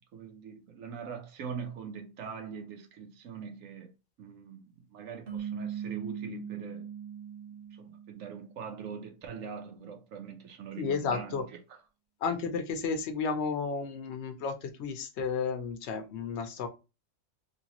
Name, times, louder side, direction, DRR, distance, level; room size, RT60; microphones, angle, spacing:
voice 1, 0.0-3.9 4.2-6.9 7.7-11.4, right 6 dB, 85° right, 1.1 m, -42 dB
sound 1, 5.3-8.6, right 8 dB, 55° right, 0.7 m, -39 dB
voice 2, 10.8-11.4 12.2-16.7, left 5 dB, 65° left, 0.9 m, -32 dB
3.1 x 2.7 x 2.9 m
omnidirectional pair, 1.4 m